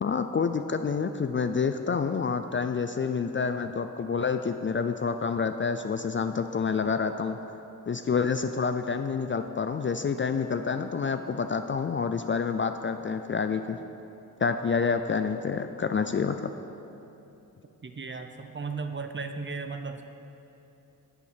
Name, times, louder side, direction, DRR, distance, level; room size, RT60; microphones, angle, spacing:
voice 1, 0.0-7.4 7.9-13.8 14.4-16.5, left 5 dB, 35° left, 8 dB, 0.4 m, -28 dB
voice 2, 17.8-20.0, right 4 dB, 30° right, 7 dB, 0.7 m, -35 dB
9.5 x 8.3 x 5.2 m, 2.9 s
cardioid pair, 65°, 36 cm